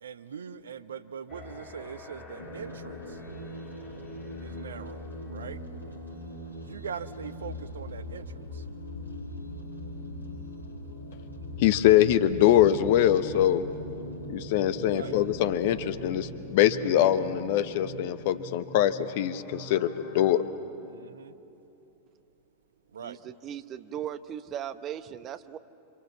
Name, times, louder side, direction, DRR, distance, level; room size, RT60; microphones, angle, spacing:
voice 1, 0.0-3.2 4.4-5.6 6.6-8.2 8.5-8.6 14.9-15.1 20.9-21.3 22.9-23.2, right 7 dB, 65° right, 12 dB, 1.0 m, -41 dB
sound 1, 1.3-20.3, left 2 dB, 25° left, 4.3 m, -44 dB
sound 2, 2.4-18.0, right 1 dB, 85° right, 2.6 m, -43 dB
voice 2, 11.6-13.7 14.3-20.4, left 11 dB, 50° left, 13 dB, 1.1 m, -23 dB
voice 3, 23.0-25.6, right 10 dB, 30° right, 12 dB, 1.0 m, -38 dB
28.0 x 26.0 x 7.3 m, 2.8 s
figure-of-eight pair, 90°, 0 cm